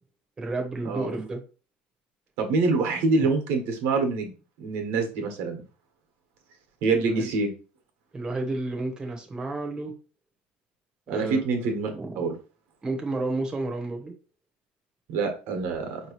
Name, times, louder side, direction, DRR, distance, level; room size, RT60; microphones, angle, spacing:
voice 1, 0.4-1.4 3.2-3.3 7.0-7.3 8.1-9.9 11.1-11.4 11.9-12.2 12.8-14.1, right 2 dB, 20° right, 2 dB, 1.1 m, -31 dB
voice 2, 2.4-4.3 4.6-5.6 6.8-7.5 11.1-11.9 12.2-12.3 15.1-16.0, right 3 dB, 70° right, 4 dB, 1.4 m, -25 dB
4.7 x 3.1 x 3.1 m, 0.36 s
supercardioid pair, 120°, 4 cm